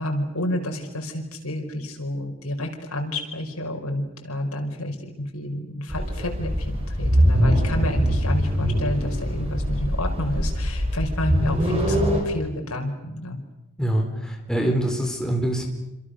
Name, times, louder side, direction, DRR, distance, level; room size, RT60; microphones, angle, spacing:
voice 1, 0.0-13.4, left 1 dB, 85° left, 3 dB, 5.2 m, -30 dB
sound 1, 5.9-12.2, equal, 25° right, 5.4 m, -23 dB
voice 2, 13.8-15.7, right 1 dB, 5° left, 2 dB, 4.1 m, -24 dB
27.5 x 26.5 x 6.6 m, 0.91 s
head